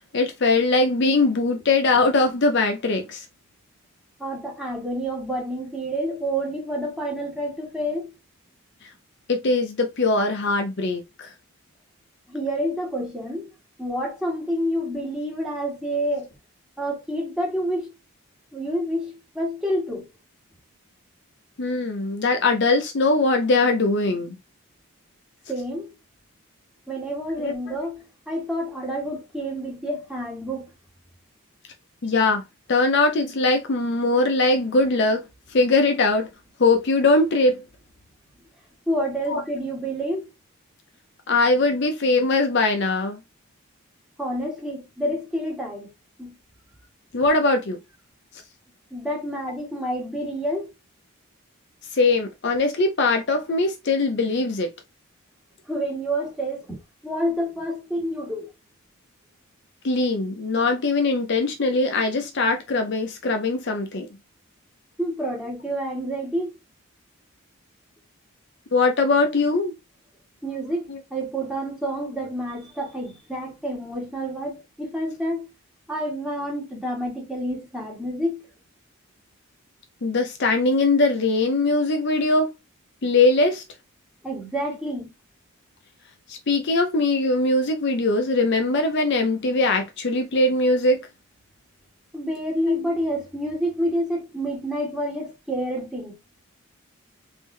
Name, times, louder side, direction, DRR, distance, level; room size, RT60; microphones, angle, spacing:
voice 1, 0.1-3.2 9.3-11.3 21.6-24.4 27.4-27.7 32.0-32.4 32.7-35.2 35.5-36.3 36.6-37.6 39.3-39.4 41.3-43.2 47.1-47.8 51.9-54.7 59.8-64.1 68.7-69.7 70.9-71.0 80.0-82.5 83.0-83.6 86.3-91.1, left 3 dB, 50° left, 0.6 m, -21 dB
voice 2, 4.2-8.1 12.3-13.5 13.8-16.3 16.8-17.9 18.5-20.1 25.5-25.9 26.9-30.7 38.9-40.3 44.2-45.9 46.2-46.4 48.9-50.7 55.7-58.5 65.0-66.5 70.4-75.5 75.9-78.5 84.2-85.1 92.1-96.2, equal, 5° right, 1.5 m, -28 dB
3.5 x 2.7 x 3.2 m
head